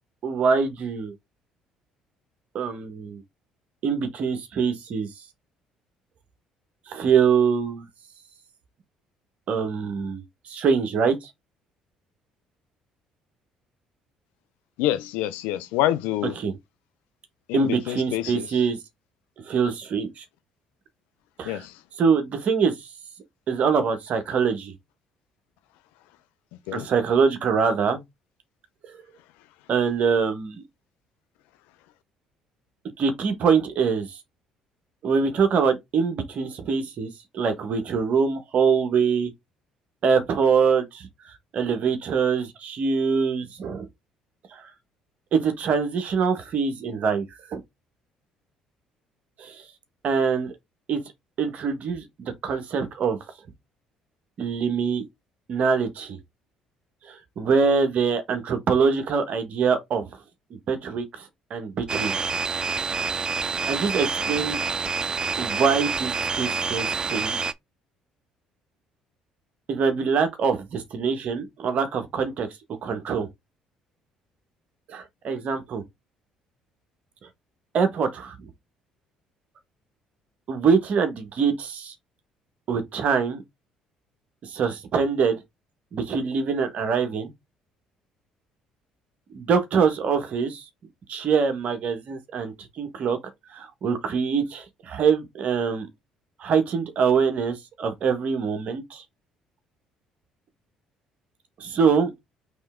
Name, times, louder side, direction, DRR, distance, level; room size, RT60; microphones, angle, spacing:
voice 1, 0.2-1.1 2.5-3.2 3.8-5.1 6.9-7.8 9.5-11.3 16.3-16.6 17.5-18.8 19.4-20.2 21.4-21.6 22.0-22.9 23.5-24.7 26.7-28.0 28.8-28.9 29.7-30.6 33.0-34.2 35.0-39.3 40.0-43.9 44.5-44.6 45.3-47.2 47.5-47.6 49.4-49.6 50.0-50.5 50.9-51.0 51.4-53.2 54.4-55.0 55.5-56.2 57.1-60.1 60.7-62.2 63.4-64.6 65.4-67.5 69.7-72.5 72.8-73.3 74.9-75.8 77.7-78.5 80.5-81.9 82.7-83.4 84.4-85.4 85.9-87.3 89.3-90.6 91.1-93.2 93.5-95.9 96.4-99.0 101.6-102.1, right 6 dB, 55° right, 1.4 m, -24 dB
voice 2, 14.8-16.3 17.5-18.5 21.4-21.7 26.7-26.9, left 13 dB, 75° left, 0.5 m, -26 dB
sound 1, 61.9-67.5, right 5 dB, 30° right, 0.4 m, -27 dB
4.3 x 3.3 x 3.6 m
hypercardioid pair, 60°, 3 cm